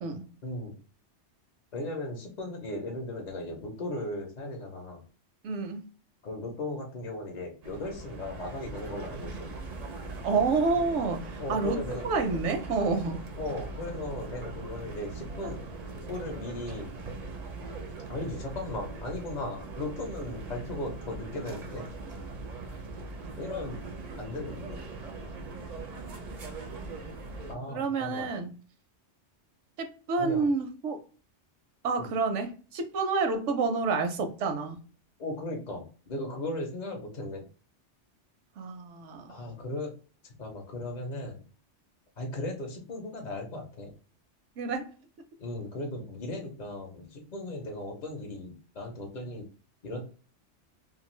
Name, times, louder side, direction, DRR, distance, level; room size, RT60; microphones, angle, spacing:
voice 1, 0.4-0.8 1.7-5.0 6.2-9.6 11.4-12.0 13.4-15.6 16.1-16.9 18.1-21.9 23.4-23.8 24.2-24.8 27.5-28.3 30.2-30.5 32.0-32.1 35.2-37.4 39.3-39.9 40.3-41.4 42.2-43.9 45.4-49.5 49.8-50.0, left 2 dB, 50° left, 0.6 m, -37 dB
voice 2, 5.4-5.8 10.2-13.2 27.7-28.5 29.8-31.0 31.8-34.8 38.6-39.3 44.6-44.9, right 4 dB, 85° right, 1.0 m, -29 dB
sound 1, 7.6-27.6, right 3 dB, 55° right, 0.5 m, -40 dB
2.5 x 2.4 x 3.0 m
omnidirectional pair, 1.2 m